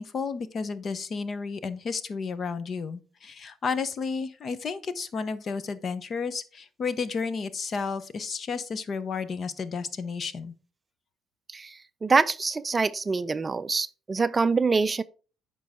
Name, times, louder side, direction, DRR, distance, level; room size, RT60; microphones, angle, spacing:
voice 1, 0.0-10.5, left 5 dB, 45° left, 0.8 m, -32 dB
voice 2, 12.0-15.0, right 4 dB, 25° right, 0.4 m, -25 dB
9.3 x 5.4 x 3.6 m
cardioid pair, 100°, 0 cm